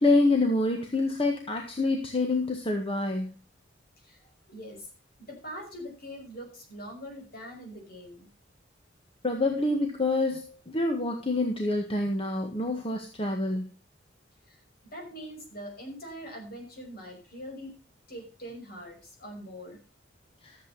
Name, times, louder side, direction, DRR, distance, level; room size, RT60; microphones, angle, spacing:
voice 1, 0.0-3.3 9.2-13.6 20.4-20.6, left 2 dB, 30° left, 3 dB, 1.6 m, -27 dB
voice 2, 4.5-4.9 5.2-8.3 14.5-14.6 14.8-17.7 18.1-19.8, equal, 55° left, 2 dB, 5.8 m, -43 dB
13.5 x 8.1 x 5.5 m, 0.33 s
head